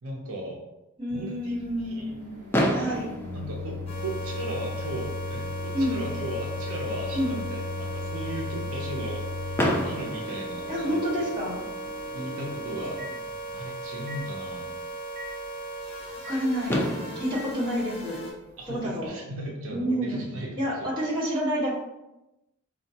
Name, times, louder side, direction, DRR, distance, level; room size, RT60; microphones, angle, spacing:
voice 1, 0.0-0.6 1.1-2.1 3.3-11.0 12.1-13.0 13.5-14.7 18.6-20.9, right 1 dB, 70° right, -2 dB, 0.6 m, -37 dB
voice 2, 1.0-3.1 5.7-6.0 7.1-7.4 10.7-11.6 16.3-16.9 17.2-18.2 18.7-19.1 19.7-20.3 20.6-21.7, equal, 20° right, -7 dB, 1.1 m, -29 dB
Microwave oven, 1.1-13.6 14.1-14.2 15.1-15.3 16.2-16.4 17.3-17.5, left 4 dB, 40° right, 0.9 m, -37 dB
Fireworks, 2.5-4.5 5.4-5.5 5.6-5.9 6.2-6.3 9.6-11.4 13.1-13.2 16.2-16.3 16.7-19.0, equal, 10° left, 0.3 m, -30 dB
sound 1, 3.9-18.3, right 2 dB, 25° left, 0.7 m, -37 dB
4.3 x 2.2 x 2.7 m, 0.95 s
head